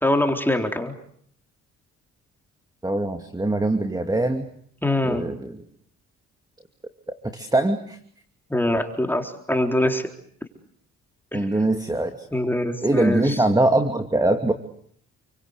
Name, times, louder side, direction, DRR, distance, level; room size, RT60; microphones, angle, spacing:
voice 1, 0.0-0.9 4.8-5.3 8.5-10.1 11.3-11.5 12.3-13.4, left 1 dB, 5° left, 4 dB, 4.0 m, -23 dB
voice 2, 2.8-4.5 5.1-5.6 7.3-8.0 11.3-12.3 12.8-14.5, right 2 dB, 10° right, 7 dB, 2.6 m, -22 dB
29.5 x 24.0 x 8.2 m, 0.64 s
cardioid pair, 90°, 30 cm